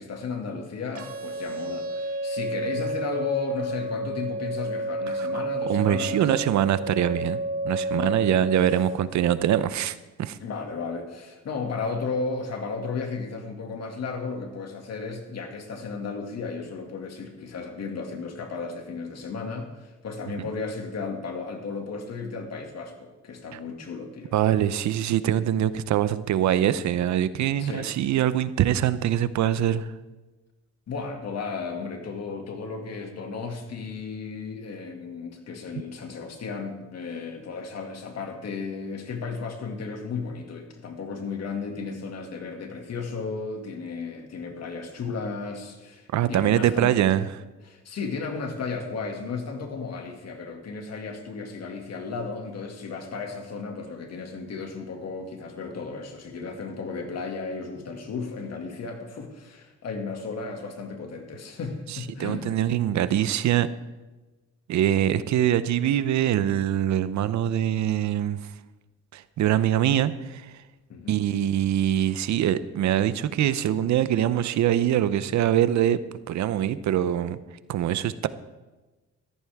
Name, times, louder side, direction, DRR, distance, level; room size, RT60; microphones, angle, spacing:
voice 1, 0.0-6.3 7.9-8.2 10.4-24.3 27.6-27.9 30.9-47.0 47.6-62.5 70.9-71.2, left 4 dB, 55° left, 4 dB, 2.3 m, -34 dB
sound 1, 0.9-8.9, right 1 dB, 50° right, 1.8 m, -31 dB
voice 2, 5.7-7.4 7.6-10.4 24.3-29.9 46.1-47.3 62.2-63.7 64.7-68.5 69.1-70.5 71.1-76.0 76.3-77.4 77.7-78.3, right 11 dB, 70° right, 15 dB, 0.7 m, -23 dB
14.5 x 14.0 x 3.6 m, 1.2 s
cardioid pair, 90°, 30 cm